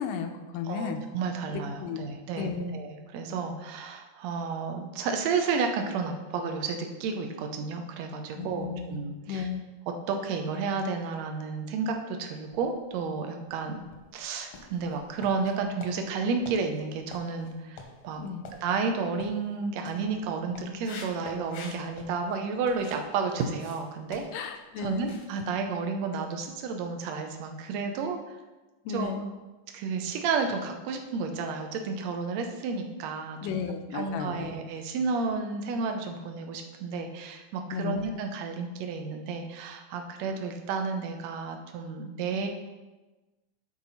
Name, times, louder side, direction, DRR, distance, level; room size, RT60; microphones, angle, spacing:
voice 1, 0.0-1.1 1.5-2.1 2.4-2.8 8.3-9.0 9.3-9.6 18.2-18.5 24.3-25.1 28.9-29.3 33.4-34.5 37.7-38.0, left 6 dB, 85° left, 6 dB, 2.2 m, -34 dB
voice 2, 0.7-9.5 10.1-13.8 14.1-18.3 18.6-24.2 24.8-28.2 28.9-29.1 29.7-33.6 33.9-42.5, right 4 dB, 75° right, 5 dB, 1.6 m, -31 dB
sound 1, 12.4-13.1 13.6-23.1 23.3-26.5 26.8-27.0 27.4-27.5, left 4 dB, 65° left, 1.6 m, -48 dB
11.5 x 4.6 x 4.1 m, 1.2 s
omnidirectional pair, 3.9 m